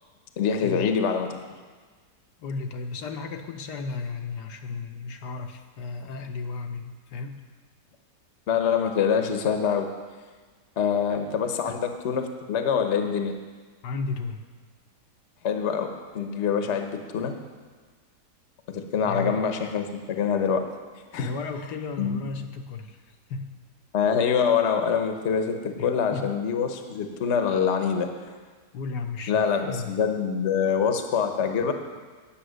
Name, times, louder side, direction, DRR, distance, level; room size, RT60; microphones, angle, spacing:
voice 1, 0.4-1.3 8.5-9.9 10.8-13.3 15.4-17.4 18.7-20.7 21.1-21.3 22.0-22.2 23.9-28.1 29.3-31.7, left 7 dB, 50° left, 6 dB, 1.1 m, -25 dB
voice 2, 2.4-7.4 11.6-11.8 13.8-14.5 19.0-19.4 21.1-23.0 23.3-23.5 25.8-26.3 28.7-29.9, left 4 dB, 80° left, 4 dB, 1.4 m, -34 dB
10.0 x 8.8 x 6.4 m, 1.4 s
omnidirectional pair, 1.8 m